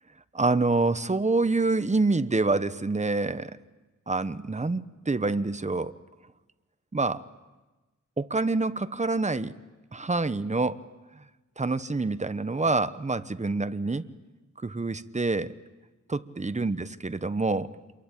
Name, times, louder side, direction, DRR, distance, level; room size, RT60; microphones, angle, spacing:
voice 1, 0.3-3.6 4.1-6.0 6.9-7.2 8.2-9.5 9.9-10.8 11.6-14.0 14.6-15.5 16.1-17.7, right 3 dB, 25° right, 13 dB, 1.0 m, -26 dB
27.5 x 23.0 x 8.9 m, 1.2 s
wide cardioid pair, 80°, 30 cm